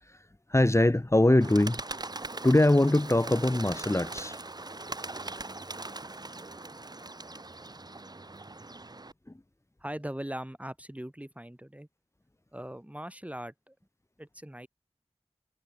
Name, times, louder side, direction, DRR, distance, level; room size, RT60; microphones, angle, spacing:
voice 1, 0.0-1.8 2.4-4.4, left 1 dB, 25° left, 1.9 m, -23 dB
Bird, 1.4-9.1, right 2 dB, 40° right, 1.0 m, -41 dB
voice 2, 9.8-11.9 12.5-13.8 14.2-14.7, right 1 dB, 10° right, 5.2 m, -40 dB
wide cardioid pair, 60°, 11 cm